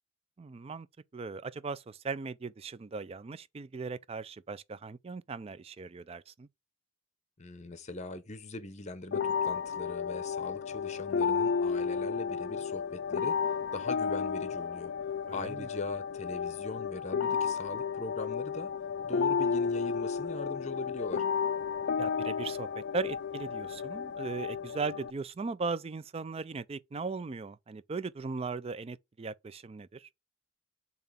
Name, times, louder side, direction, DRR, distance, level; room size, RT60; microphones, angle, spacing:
voice 1, 0.4-0.9 1.1-6.5 15.3-15.7 22.0-30.1, right 4 dB, 25° right, 0.3 m, -38 dB
voice 2, 7.4-14.9 15.3-18.7 19.0-21.3, left 2 dB, 30° left, 0.7 m, -41 dB
sound 1, 9.1-25.1, left 6 dB, 50° left, 0.3 m, -32 dB
7.1 x 3.0 x 5.6 m
head